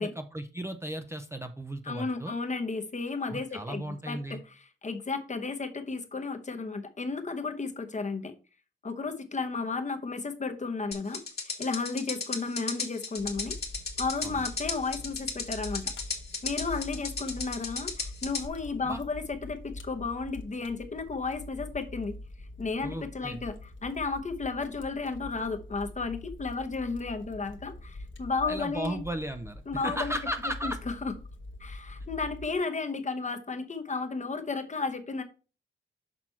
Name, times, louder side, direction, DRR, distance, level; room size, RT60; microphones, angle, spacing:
voice 1, 0.0-2.3 3.3-4.4 14.2-14.4 18.8-19.0 22.8-23.4 28.5-30.8, right 1 dB, 15° right, 7 dB, 0.5 m, -36 dB
voice 2, 1.9-4.4 4.8-8.3 8.8-13.5 14.0-15.9 16.4-22.1 22.6-29.0 29.7-30.2 30.6-30.7 31.0-31.1 31.6-35.2, left 4 dB, 35° left, 7 dB, 0.9 m, -33 dB
sound 1, 10.9-18.5, left 4 dB, 50° left, 1.7 m, -35 dB
Fire, 13.2-32.5, left 2 dB, 70° left, 1.0 m, -44 dB
6.1 x 5.9 x 4.4 m, 0.36 s
wide cardioid pair, 155°, 20 cm